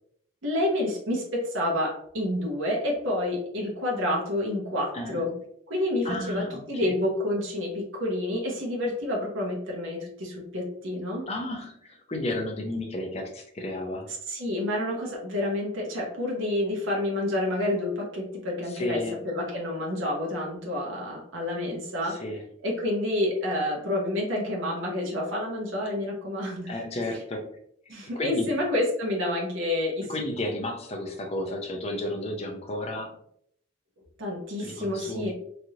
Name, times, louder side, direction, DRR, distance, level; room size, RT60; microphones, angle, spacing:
voice 1, 0.4-5.3 5.7-11.2 14.3-22.2 22.6-26.7 27.9-30.1 34.2-35.3, left 1 dB, 70° right, -1 dB, 0.8 m, -29 dB
voice 2, 4.9-5.3 6.0-6.9 11.3-14.1 18.7-19.2 22.0-22.4 26.7-27.5 27.9-28.5 30.1-33.1 34.6-35.3, left 1 dB, 30° left, 2 dB, 0.5 m, -33 dB
3.1 x 2.5 x 2.7 m, 0.69 s
head